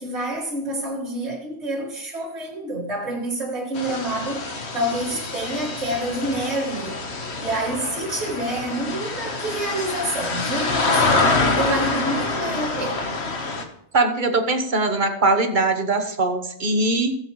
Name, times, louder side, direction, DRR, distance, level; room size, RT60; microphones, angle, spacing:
voice 1, 0.0-4.5 4.7-7.0 7.4-13.1, right 1 dB, 75° right, 2.5 m, -28 dB
sound 1, 3.7-13.6, left 3 dB, 70° left, 1.6 m, -26 dB
voice 2, 13.9-17.1, right 2 dB, 45° right, 1.2 m, -21 dB
19.0 x 8.0 x 3.2 m
omnidirectional pair, 1.1 m